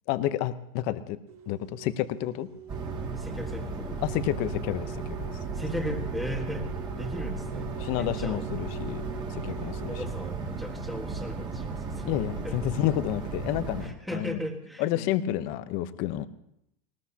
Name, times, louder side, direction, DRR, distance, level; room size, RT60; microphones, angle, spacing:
voice 1, 0.1-1.2 1.5-2.5 4.0-5.3 7.8-9.0 9.3-9.9 12.0-14.4 14.8-16.3, left 13 dB, 50° left, 12 dB, 0.9 m, -30 dB
sound 1, 1.3-10.4, right 9 dB, 85° right, 5.7 m, -44 dB
sound 2, 2.7-13.9, right 4 dB, 25° right, 2.3 m, -35 dB
voice 2, 3.2-4.0 5.5-6.7 7.0-7.7 8.0-8.4 9.9-12.2 12.4-12.6 13.8-15.4, left 1 dB, ahead, 2 dB, 1.7 m, -37 dB
19.5 x 19.5 x 2.9 m, 0.77 s
supercardioid pair, 150°, 19 cm